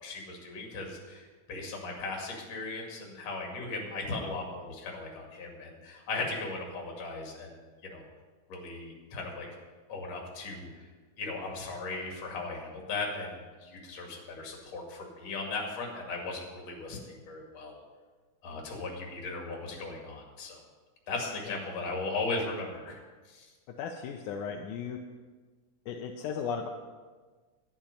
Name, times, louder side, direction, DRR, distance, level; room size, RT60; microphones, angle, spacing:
voice 1, 0.0-8.0 8.5-9.5 9.9-10.7 11.2-17.8 18.4-20.6 21.1-23.0 23.3-23.5, left 3 dB, 55° left, 0 dB, 3.3 m, -37 dB
voice 2, 23.8-25.0 25.9-26.7, left 6 dB, 85° left, 2 dB, 2.2 m, -36 dB
11.5 x 10.5 x 5.3 m, 1.4 s
omnidirectional pair, 3.5 m